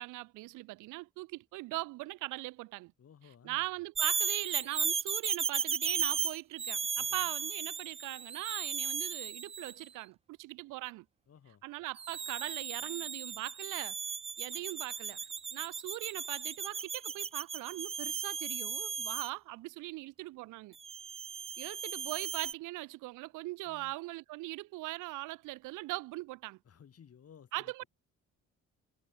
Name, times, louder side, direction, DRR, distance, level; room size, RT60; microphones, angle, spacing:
voice 1, 0.0-2.9 3.4-11.1 11.6-14.0 14.4-15.2 15.5-20.8 21.6-26.6 27.5-27.8, right 20 dB, 90° right, 0.5 m, -40 dB
voice 2, 3.0-3.6 7.0-7.3 11.3-11.6 23.6-23.9 26.6-27.7, left 8 dB, 50° left, 4.7 m, -57 dB
sound 1, 4.0-9.8 12.0-19.3 20.8-22.5, right 6 dB, 20° right, 0.3 m, -36 dB
cardioid pair, 90°, 30 cm